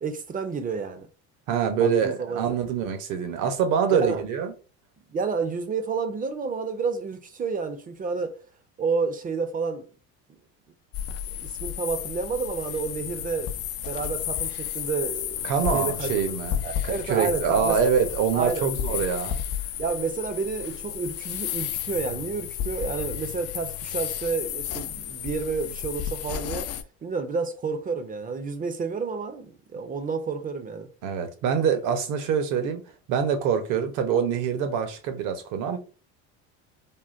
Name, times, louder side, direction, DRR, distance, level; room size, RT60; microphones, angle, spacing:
voice 1, 0.0-1.1 1.8-2.5 3.9-4.2 5.1-8.4 8.8-9.8 11.4-16.1 16.6-17.8 18.3-18.7 19.8-26.7 27.0-30.9, right 5 dB, 25° right, 0.5 m, -30 dB
voice 2, 1.5-4.5 15.4-19.4 31.0-32.8 33.1-35.8, right 7 dB, 65° right, 0.8 m, -25 dB
sound 1, 10.9-26.8, left 10 dB, 50° left, 0.4 m, -32 dB
3.6 x 2.1 x 2.5 m
supercardioid pair, 95°, 33 cm